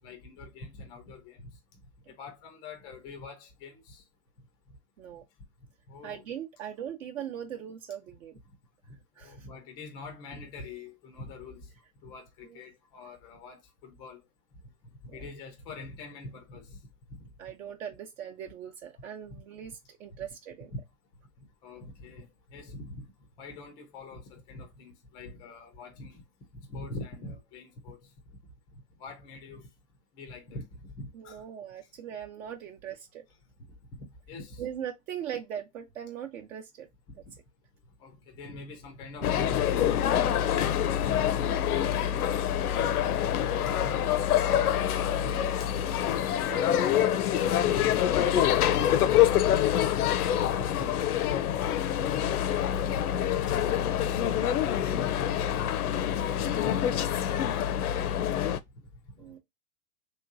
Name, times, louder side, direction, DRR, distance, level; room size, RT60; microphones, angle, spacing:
voice 1, 0.0-1.5 2.1-4.0 5.9-6.2 8.9-11.7 12.0-14.2 15.1-16.8 17.1-17.3 20.7-20.8 21.6-23.0 23.4-26.2 26.7-28.0 28.3-28.4 29.0-29.7 30.1-31.4 33.9-34.6 37.2-37.3 38.0-40.3 40.6-42.1 42.6-43.2 43.5-43.9 45.1-45.5 47.7-47.8 48.1-48.5 48.8-48.9 49.2-50.0 50.6-51.4 51.7-51.8 52.0-52.2 52.5-52.6 54.0-54.1 54.3-57.7 58.7-59.3, left 2 dB, 10° left, 0.3 m, -44 dB
voice 2, 6.0-8.4 9.2-9.5 12.4-12.6 15.1-15.2 17.4-20.7 31.1-33.3 34.6-36.9 44.9-47.7 59.2-59.4, right 9 dB, 60° right, 0.8 m, -40 dB
sound 1, 39.2-58.6, left 10 dB, 85° left, 0.6 m, -26 dB
3.2 x 2.9 x 2.5 m
hypercardioid pair, 135°, 44 cm